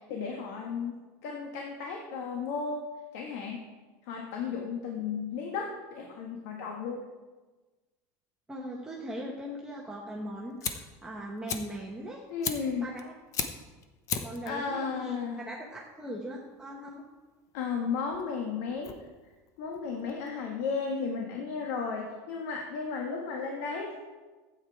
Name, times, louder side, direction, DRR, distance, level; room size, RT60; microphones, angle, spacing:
voice 1, 0.1-1.0 1.2-3.7 4.0-7.1 12.3-13.0 14.4-15.4 17.5-19.0 19.6-24.0, left 5 dB, 75° left, 1 dB, 1.5 m, -34 dB
voice 2, 8.5-12.2 12.8-13.1 14.2-17.0, equal, 10° right, -3 dB, 1.2 m, -40 dB
Fire, 10.2-20.7, left 7 dB, 40° left, 0.9 m, -39 dB
12.0 x 8.7 x 4.8 m, 1.3 s
cardioid pair, 150°, 9 cm